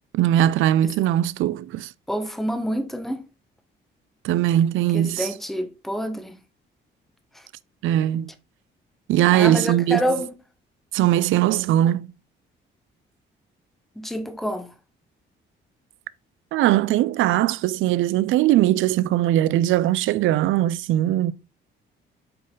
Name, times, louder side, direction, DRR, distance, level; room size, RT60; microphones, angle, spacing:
voice 1, 0.1-1.9 4.2-5.3 7.8-8.3 9.1-10.0 10.9-12.1 16.5-21.3, right 13 dB, 80° right, 0.4 m, -20 dB
voice 2, 2.1-3.2 4.9-6.4 9.3-10.3 14.0-14.7, equal, ahead, 1.1 m, -27 dB
7.8 x 4.0 x 3.8 m
cardioid pair, 90°, 20 cm